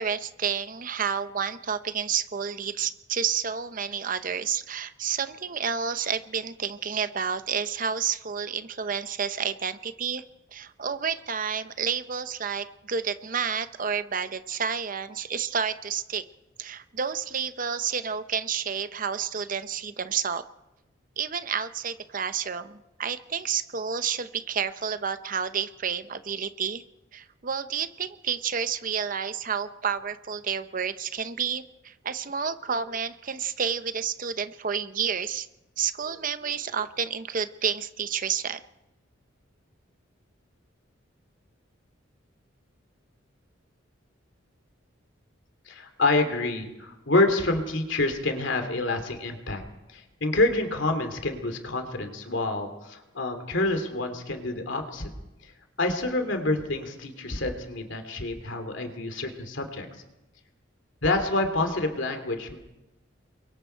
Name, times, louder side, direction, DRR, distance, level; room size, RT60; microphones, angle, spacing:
voice 1, 0.0-10.2 10.5-16.2 16.6-20.4 21.2-26.8 27.1-35.5 35.8-38.6, right 7 dB, 45° right, 11 dB, 0.7 m, -30 dB
voice 2, 45.7-49.6 49.9-55.1 55.4-55.5 55.8-59.9 61.0-62.6, left 2 dB, 70° left, 6 dB, 2.8 m, -27 dB
28.5 x 23.0 x 4.5 m, 0.99 s
head